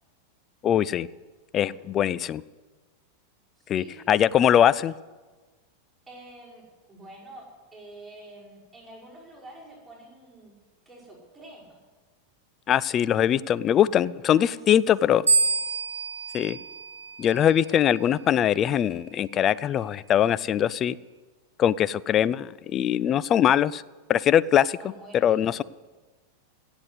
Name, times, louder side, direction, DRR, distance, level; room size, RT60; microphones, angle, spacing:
voice 1, 0.6-1.1 1.5-2.4 3.7-4.9 12.7-15.2 16.3-16.6 17.2-21.0 21.6-23.8 24.1-24.8 25.1-25.6, left 10 dB, 30° left, 19 dB, 0.4 m, -22 dB
voice 2, 3.6-4.0 6.1-6.6 6.9-7.4 7.7-10.5 10.9-11.8 14.3-14.6 15.0-15.3 24.8-25.6, right 1 dB, 5° right, -7 dB, 5.8 m, -47 dB
sound 1, 15.3-17.7, right 4 dB, 75° right, 0.8 m, -27 dB
16.5 x 8.1 x 8.3 m, 1.3 s
figure-of-eight pair, 90°, 0 cm